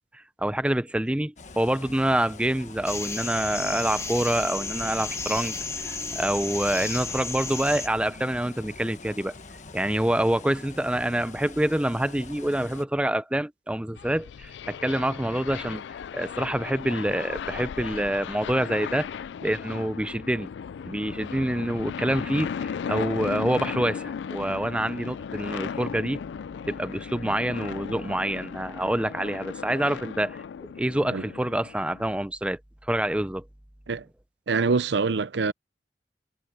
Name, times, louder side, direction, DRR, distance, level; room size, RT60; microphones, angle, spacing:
voice 1, 0.4-5.6 5.9-9.3 9.7-15.8 16.1-19.1 19.4-20.5 20.9-26.2 26.7-30.4 30.8-32.6 32.9-33.4, right 1 dB, 5° right, 0.6 m, -26 dB
sound 1, 1.4-12.8, left 3 dB, 45° left, 1.3 m, -45 dB
sound 2, 2.9-7.9, left 4 dB, 15° left, 1.3 m, -33 dB
sound 3, 14.0-32.2, left 7 dB, 80° left, 0.3 m, -36 dB
voice 2, 34.5-35.5, right 4 dB, 75° right, 0.6 m, -24 dB
head